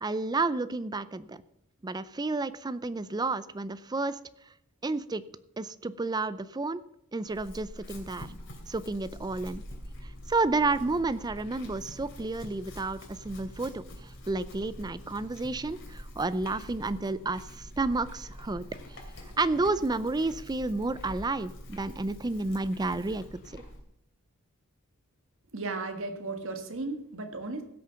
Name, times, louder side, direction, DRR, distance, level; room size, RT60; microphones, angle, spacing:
voice 1, 0.0-1.4 1.8-4.2 4.8-5.2 5.6-6.8 7.1-8.3 8.7-9.6 10.3-13.8 14.3-18.7 19.4-23.6, right 3 dB, 20° right, 15 dB, 0.4 m, -31 dB
Chewing mastication / Livestock farm animals working animals, 7.2-23.8, equal, 60° left, 2.8 m, -45 dB
voice 2, 25.5-27.6, right 3 dB, 60° right, 6 dB, 1.7 m, -35 dB
16.0 x 6.7 x 5.7 m, 0.78 s
head